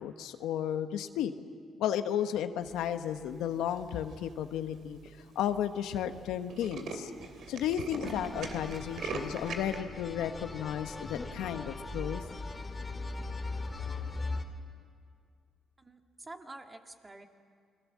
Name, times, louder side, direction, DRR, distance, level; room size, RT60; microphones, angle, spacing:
voice 1, 0.0-1.3 1.8-5.0 5.3-7.1 7.5-12.2, left 10 dB, 90° left, 9 dB, 1.1 m, -33 dB
Tools, 3.7-4.1 4.7-4.8 5.1-5.2 5.4-5.6 5.9-6.0 6.3-9.8, right 4 dB, 65° right, 2.8 m, -40 dB
sound 1, 8.0-14.4, left 3 dB, 25° left, 2.3 m, -39 dB
voice 2, 15.8-17.3, right 2 dB, 20° right, 4 dB, 2.0 m, -48 dB
28.5 x 21.5 x 7.4 m, 2.3 s
cardioid pair, 90°, 0 cm